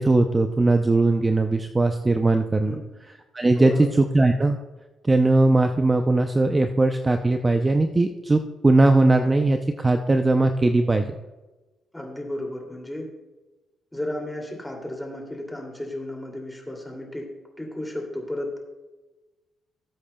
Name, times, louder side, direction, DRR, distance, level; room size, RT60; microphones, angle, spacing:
voice 1, 0.0-2.8 3.3-4.6 5.0-11.2, right 2 dB, 20° right, 6 dB, 0.6 m, -20 dB
voice 2, 3.6-3.9 11.9-13.1 13.9-17.3 17.6-18.6, left 1 dB, 5° left, 1 dB, 2.7 m, -33 dB
18.5 x 8.3 x 2.3 m, 1.1 s
cardioid pair, 90°, 0 cm